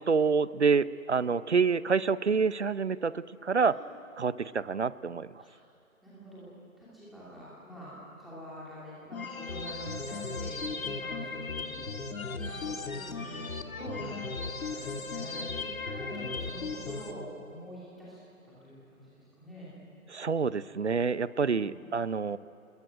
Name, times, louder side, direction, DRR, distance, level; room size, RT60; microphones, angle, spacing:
voice 1, 0.0-3.8 4.2-5.3 20.1-22.4, right 5 dB, 50° right, 18 dB, 0.7 m, -27 dB
voice 2, 6.0-12.0 12.3-13.5 13.7-14.1 14.6-18.2 18.4-19.8, equal, ahead, -9 dB, 2.6 m, -46 dB
sound 1, 9.1-17.1, left 4 dB, 70° left, 2.1 m, -36 dB
26.0 x 21.0 x 9.1 m, 2.6 s
figure-of-eight pair, 170°, 43 cm